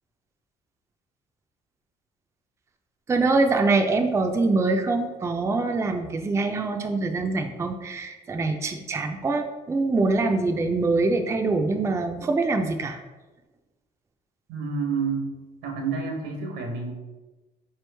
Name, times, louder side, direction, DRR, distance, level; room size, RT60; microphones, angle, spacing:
voice 1, 3.1-13.0, right 3 dB, 15° right, 4 dB, 0.4 m, -24 dB
voice 2, 14.5-15.4 15.6-16.9, right 5 dB, 85° right, 2 dB, 1.0 m, -29 dB
4.6 x 3.0 x 3.3 m, 1.2 s
cardioid pair, 110°, 17 cm